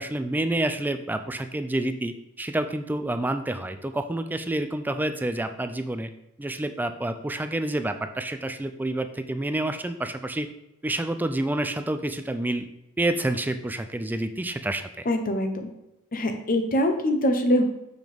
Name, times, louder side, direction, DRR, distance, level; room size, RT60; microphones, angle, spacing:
voice 1, 0.0-6.1 6.4-10.5 10.8-12.7 13.0-15.0, right 1 dB, 10° right, 9 dB, 0.3 m, -28 dB
voice 2, 15.1-15.7 16.1-17.6, left 1 dB, 40° left, 6 dB, 0.9 m, -23 dB
6.8 x 6.0 x 3.5 m, 0.88 s
head